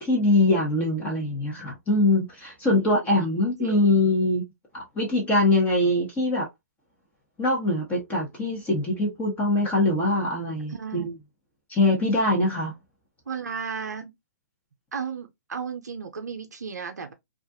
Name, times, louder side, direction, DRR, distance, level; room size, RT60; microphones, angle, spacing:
voice 1, 0.0-4.5 4.7-6.5 7.4-11.1 11.7-12.7, left 2 dB, 15° left, 0.9 m, -23 dB
voice 2, 10.7-11.1 13.3-14.1 14.9-17.1, right 6 dB, 85° right, 0.5 m, -34 dB
2.4 x 2.4 x 2.6 m
hypercardioid pair, 125°, 9 cm